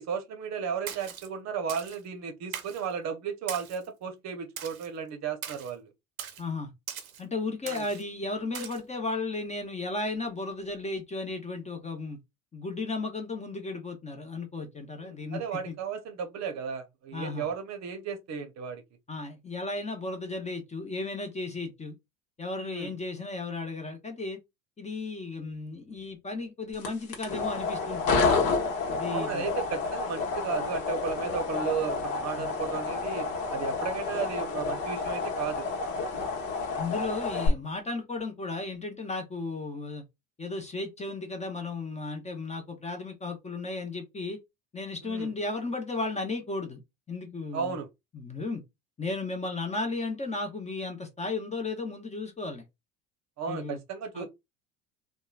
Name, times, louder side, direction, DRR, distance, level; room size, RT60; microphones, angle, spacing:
voice 1, 0.0-5.9 7.7-7.8 15.0-18.8 22.6-22.9 29.1-35.7 45.0-45.3 47.5-47.9 53.4-54.3, right 6 dB, 40° right, 0.7 m, -34 dB
Splash splatter, 0.9-1.3 1.7-2.0 2.5-2.9 3.5-3.9 4.6-4.9 5.4-5.7 6.2-6.4 6.9-7.2 7.7-8.0 8.5-8.8, right 8 dB, 85° right, 0.6 m, -40 dB
voice 2, 6.4-6.7 7.2-12.2 12.5-15.7 17.1-17.5 19.1-21.9 22.4-24.4 24.8-28.4 28.9-29.5 32.4-32.5 36.8-40.0 40.4-44.4 44.7-46.8 47.1-47.8 48.1-48.6 49.0-52.6 53.5-53.8 54.1-54.3, left 3 dB, 15° left, 0.7 m, -34 dB
sound 1, 26.7-37.5, left 4 dB, 60° left, 1.0 m, -30 dB
2.9 x 2.2 x 2.3 m
hypercardioid pair, 70°, 41 cm